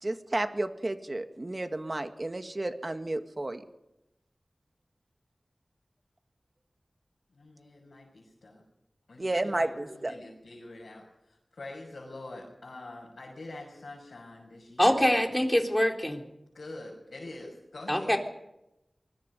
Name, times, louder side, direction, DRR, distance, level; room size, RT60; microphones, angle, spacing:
voice 1, 0.0-3.6 9.2-10.1, right 2 dB, 40° right, 7 dB, 1.9 m, -32 dB
voice 2, 7.3-8.6 9.1-15.5 16.5-18.1, left 2 dB, 85° left, -3 dB, 6.0 m, -45 dB
voice 3, 14.8-16.2 17.9-18.2, left 1 dB, 10° left, 3 dB, 3.8 m, -24 dB
24.0 x 22.0 x 5.4 m, 0.88 s
wide cardioid pair, 65°, 0 cm